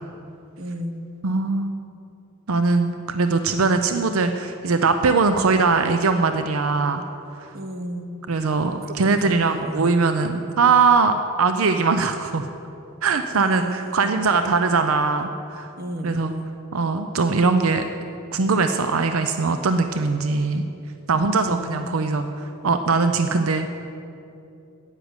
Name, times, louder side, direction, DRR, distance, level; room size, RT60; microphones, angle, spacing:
voice 1, 0.6-1.1 7.5-8.1 8.9-9.9 13.3-14.1 15.8-16.6 21.3-22.0, equal, 45° right, 6 dB, 1.0 m, -32 dB
voice 2, 1.2-1.7 2.5-7.0 7.4-7.5 8.3-12.5 13.0-15.7 16.0-16.3 16.7-17.9 18.3-20.6 21.1-23.7, right 4 dB, 80° right, 8 dB, 0.6 m, -21 dB
10.0 x 9.2 x 8.0 m, 2.7 s
head